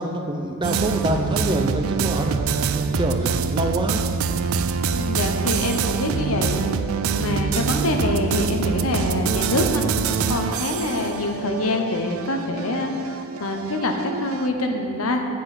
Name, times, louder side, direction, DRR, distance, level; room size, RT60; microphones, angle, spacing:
voice 1, 0.0-2.5 2.7-4.1, right 1 dB, 20° right, 4 dB, 0.6 m, -26 dB
sound 1, 0.6-14.5, right 5 dB, 80° right, 0.4 m, -25 dB
voice 2, 4.9-6.6 7.1-15.2, left 2 dB, 85° left, 4 dB, 1.0 m, -25 dB
8.4 x 7.6 x 6.0 m, 2.5 s
head